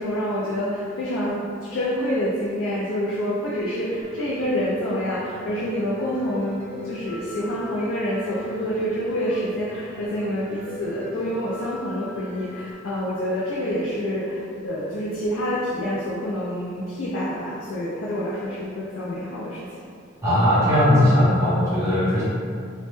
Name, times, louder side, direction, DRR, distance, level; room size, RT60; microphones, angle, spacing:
voice 1, 0.0-19.8, equal, 80° left, -6 dB, 0.4 m, -27 dB
Piano, 4.0-12.7, right 1 dB, 70° right, 0.5 m, -41 dB
voice 2, 20.2-22.2, left 1 dB, 15° right, -12 dB, 0.6 m, -18 dB
2.1 x 2.0 x 3.0 m, 2.3 s
head